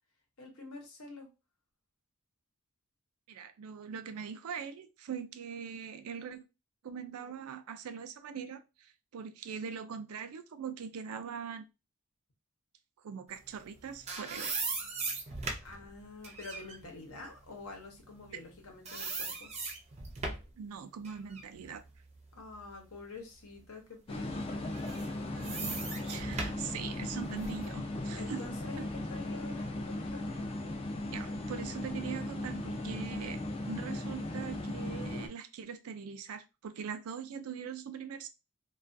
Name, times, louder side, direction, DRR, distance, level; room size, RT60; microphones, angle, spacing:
voice 1, 0.4-1.3 15.6-19.5 22.3-24.5 28.2-30.5, left 3 dB, 70° left, 0.9 m, -47 dB
voice 2, 3.3-6.5 6.8-11.7 13.0-14.6 20.6-21.8 25.4-28.4 28.8-28.9 31.1-38.3, right 7 dB, 85° right, 0.4 m, -42 dB
sound 1, 13.6-18.5 18.9-20.6 21.0-23.0 23.5-23.6 24.6-27.7, right 3 dB, 30° right, 0.5 m, -39 dB
sound 2, 24.1-35.3, left 1 dB, 25° left, 0.3 m, -37 dB
2.3 x 2.3 x 2.5 m
head